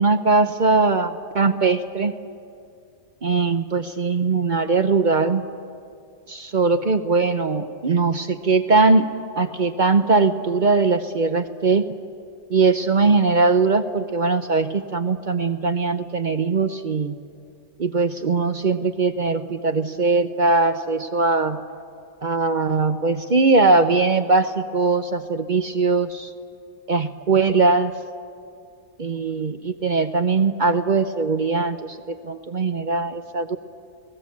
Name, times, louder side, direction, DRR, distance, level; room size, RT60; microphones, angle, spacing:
voice 1, 0.0-2.1 3.2-5.4 6.3-9.1 9.4-11.9 12.5-17.2 17.8-21.6 22.2-26.3 26.9-27.9 29.0-33.6, right 4 dB, 50° right, 9 dB, 0.5 m, -20 dB
30.0 x 18.5 x 8.5 m, 2.4 s
omnidirectional pair, 1.8 m